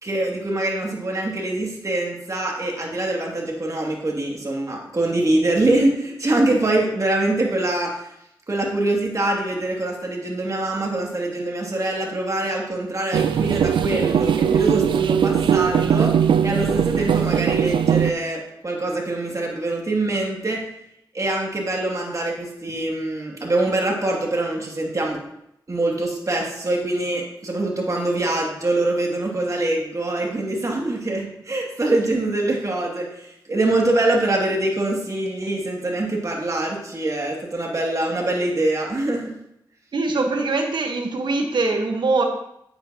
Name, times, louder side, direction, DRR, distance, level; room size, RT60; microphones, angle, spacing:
voice 1, 0.0-8.1 8.5-16.1 16.4-20.6 21.1-25.3 25.7-39.3, right 2 dB, 40° right, -1 dB, 2.5 m, -24 dB
sound 1, 13.1-18.1, right 8 dB, 85° right, 0.4 m, -20 dB
voice 2, 39.9-42.2, right 3 dB, 70° right, 3 dB, 1.4 m, -22 dB
8.6 x 8.1 x 3.0 m, 0.78 s
cardioid pair, 50°, 8 cm